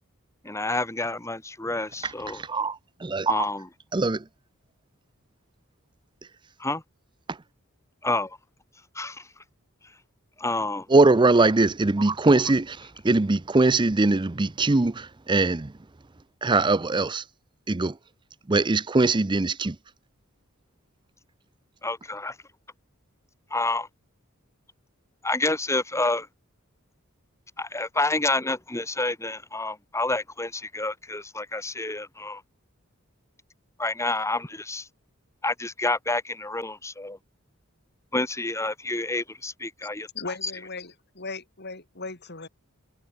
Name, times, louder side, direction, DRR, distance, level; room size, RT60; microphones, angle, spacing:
voice 1, 0.4-2.4 3.3-3.7 6.6-6.8 8.0-8.4 8.9-9.3 10.4-10.9 21.8-22.4 23.5-23.9 25.2-26.3 27.6-32.4 33.8-34.9 35.4-37.2 38.1-40.1 40.4-40.5, left 2 dB, 15° left, 2.4 m, -28 dB
voice 2, 2.3-3.5 3.9-4.2 10.9-15.7 16.4-17.2 17.7-17.9 18.5-19.8, right 3 dB, 20° right, 0.6 m, -21 dB
voice 3, 40.1-42.5, left 3 dB, 50° left, 5.4 m, -37 dB
head